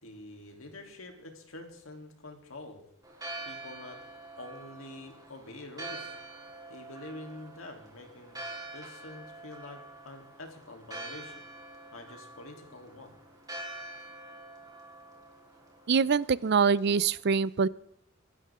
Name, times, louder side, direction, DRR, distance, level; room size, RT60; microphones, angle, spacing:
voice 1, 0.0-2.8 3.4-4.0 4.4-6.1 6.7-8.4 8.7-11.4 11.9-13.2, left 2 dB, 80° left, 3 dB, 3.3 m, -46 dB
Church bell, 3.0-17.1, right 2 dB, 20° right, 3.8 m, -46 dB
voice 2, 15.9-17.7, right 5 dB, 55° right, 20 dB, 0.5 m, -24 dB
25.0 x 12.0 x 3.7 m, 0.67 s
head